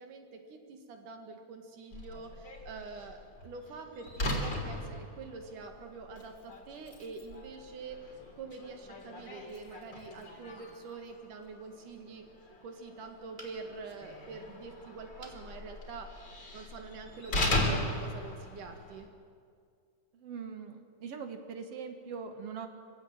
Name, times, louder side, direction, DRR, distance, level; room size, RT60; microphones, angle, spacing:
voice 1, 0.0-12.3 12.6-16.2 16.5-19.1, right 4 dB, 90° right, 4 dB, 3.5 m, -46 dB
Slam, 1.9-19.1, left 1 dB, 35° left, 3.7 m, -38 dB
sound 1, 13.4-13.9 15.2-15.5 16.0-16.1 16.5-16.6, right 1 dB, 15° right, 2.7 m, -51 dB
voice 2, 20.1-22.7, right 6 dB, 55° right, 6 dB, 2.3 m, -42 dB
24.5 x 16.5 x 9.0 m, 2.2 s
omnidirectional pair, 3.5 m